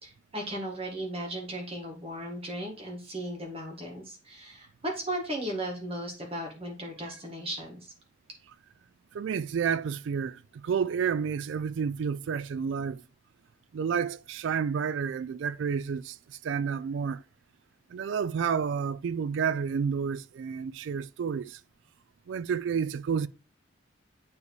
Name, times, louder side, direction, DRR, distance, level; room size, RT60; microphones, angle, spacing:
voice 1, 0.0-7.9, right 1 dB, 30° right, 1.6 m, -36 dB
voice 2, 9.1-13.0 13.7-17.2 17.9-21.6 22.3-23.3, right 6 dB, 70° right, 0.3 m, -30 dB
9.4 x 3.3 x 3.2 m
head